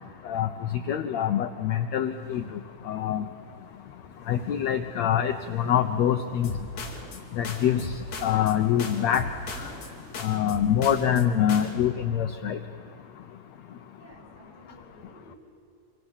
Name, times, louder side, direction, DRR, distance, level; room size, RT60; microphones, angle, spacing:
voice 1, 0.2-2.4 2.9-3.2 4.3-6.5 7.4-7.9 8.2-9.2 10.2-12.6, left 9 dB, 70° left, 8 dB, 1.7 m, -25 dB
sound 1, 2.1-10.3, right 1 dB, 40° right, 8.4 m, -50 dB
sound 2, 6.4-7.2 7.4-8.5 8.8-9.9 10.1-11.2 11.5-11.8, left 3 dB, 55° left, 3.5 m, -37 dB
voice 2, 13.9-15.4, right 2 dB, 75° right, -3 dB, 9.0 m, -53 dB
27.5 x 26.0 x 7.3 m, 2.7 s
omnidirectional pair, 3.9 m